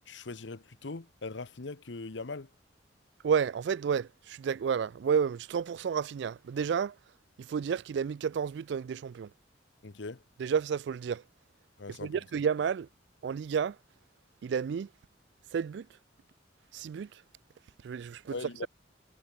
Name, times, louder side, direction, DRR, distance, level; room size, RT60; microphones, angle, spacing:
voice 1, 0.1-2.5 9.8-10.2 11.8-12.2 18.3-18.7, left 3 dB, 75° left, 1.0 m, -40 dB
voice 2, 3.2-6.9 7.4-9.3 10.4-11.2 12.0-12.9 13.2-13.8 14.4-14.9 15.5-15.9 16.7-17.1 17.8-18.3, right 7 dB, 65° right, 0.3 m, -31 dB
head